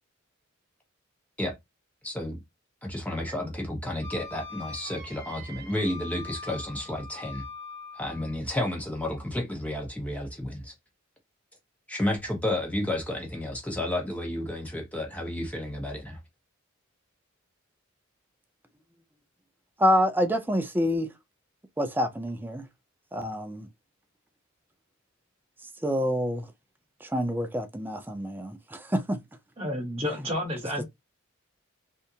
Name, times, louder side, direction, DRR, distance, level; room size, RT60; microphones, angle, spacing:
voice 1, 2.0-2.4 2.8-7.4 8.0-10.7 11.9-16.2, left 1 dB, 5° left, 1.1 m, -31 dB
Wind instrument woodwind instrument, 4.0-8.4, left 3 dB, 50° right, 0.8 m, -43 dB
voice 2, 19.8-21.1 21.8-22.6 23.1-23.7 25.8-26.5 27.0-29.2 30.8-30.9, equal, 10° right, 0.4 m, -27 dB
voice 3, 29.6-30.8, left 1 dB, 25° right, 1.0 m, -30 dB
3.4 x 2.7 x 2.7 m
head